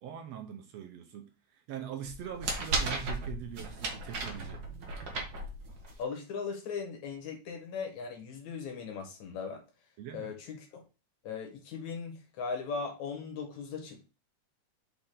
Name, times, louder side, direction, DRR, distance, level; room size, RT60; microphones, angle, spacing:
voice 1, 0.0-4.6 10.0-10.4, right 9 dB, 70° right, 5 dB, 1.8 m, -43 dB
sound 1, 2.0-6.0, right 2 dB, 45° right, 1.4 m, -35 dB
voice 2, 6.0-9.6 10.1-10.8 11.2-14.1, left 5 dB, 75° left, 3 dB, 2.8 m, -38 dB
5.8 x 4.3 x 3.8 m, 0.30 s
omnidirectional pair, 3.3 m